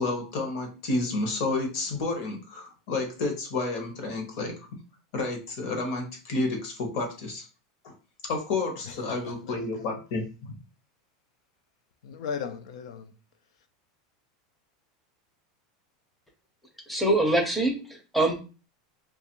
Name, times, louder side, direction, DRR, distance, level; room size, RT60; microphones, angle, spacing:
voice 1, 0.0-4.8 5.1-7.4 7.8-7.9 8.2-10.6, left 3 dB, 45° left, 0.8 m, -30 dB
voice 2, 8.8-10.0 12.0-13.1, left 6 dB, 85° left, 0.4 m, -38 dB
voice 3, 16.9-18.4, right 1 dB, ahead, 0.5 m, -24 dB
2.5 x 2.3 x 2.9 m
supercardioid pair, 170°, 3 cm